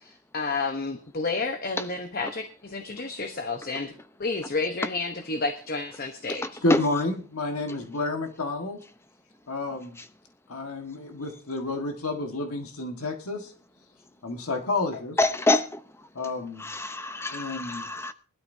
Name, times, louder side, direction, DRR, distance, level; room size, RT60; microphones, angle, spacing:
voice 1, 0.0-3.9 4.2-6.6, left 3 dB, 40° left, 1.0 m, -31 dB
voice 2, 6.6-8.8 9.5-10.0 10.5-13.5 14.2-15.2 16.2-16.7 17.3-17.8, left 2 dB, 75° left, 1.7 m, -30 dB
voice 3, 15.2-15.6 16.7-18.1, left 2 dB, 10° left, 0.7 m, -26 dB
21.0 x 12.5 x 2.7 m
head